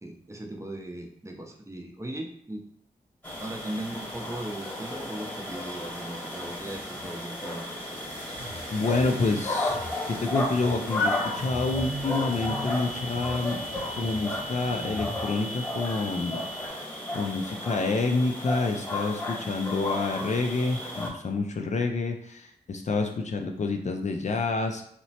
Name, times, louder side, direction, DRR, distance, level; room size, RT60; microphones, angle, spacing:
voice 1, 0.0-2.6 3.4-7.7, right 1 dB, 15° right, 2 dB, 0.6 m, -38 dB
sound 1, 3.2-21.1, left 1 dB, 10° left, 1.1 m, -34 dB
sound 2, 8.3-15.2, equal, 70° right, 1.0 m, -40 dB
voice 2, 8.7-9.8 10.1-13.6 13.9-16.9 17.1-24.8, left 3 dB, 45° left, 4 dB, 0.4 m, -28 dB
sound 3, 11.0-16.7, equal, 75° left, 0.7 m, -42 dB
2.9 x 2.1 x 2.7 m, 0.67 s
supercardioid pair, 40°, 16 cm